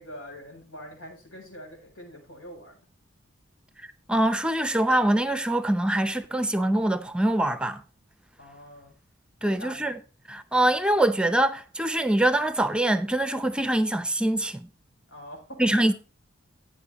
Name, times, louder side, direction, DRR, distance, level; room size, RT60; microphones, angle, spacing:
voice 1, 0.0-2.8 8.4-8.9 9.4-9.9 15.1-15.9, equal, 90° left, 7.5 m, -44 dB
voice 2, 4.1-7.8 9.4-10.0 10.3-14.7 15.6-15.9, right 1 dB, 5° right, 0.6 m, -24 dB
15.5 x 8.9 x 3.0 m
head